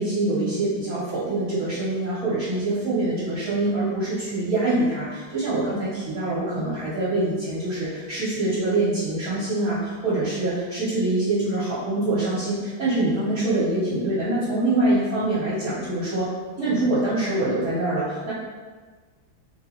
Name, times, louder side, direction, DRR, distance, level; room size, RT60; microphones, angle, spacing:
voice 1, 0.0-16.3 16.6-18.3, right 2 dB, 65° right, -11 dB, 1.3 m, -24 dB
3.2 x 2.9 x 2.9 m, 1.4 s
omnidirectional pair, 1.8 m